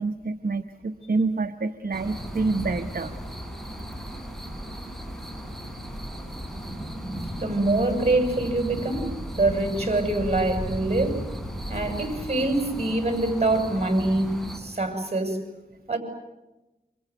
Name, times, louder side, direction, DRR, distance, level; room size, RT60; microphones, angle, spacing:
voice 1, 0.0-3.1, right 3 dB, 60° right, 8 dB, 1.2 m, -27 dB
sound 1, 1.9-14.6, equal, ahead, 8.0 m, -35 dB
voice 2, 7.3-9.1 9.4-11.2 11.7-15.4 15.9-16.0, right 2 dB, 40° right, 6 dB, 7.7 m, -24 dB
28.0 x 26.5 x 8.0 m, 1.0 s
cardioid pair, 50°, 17 cm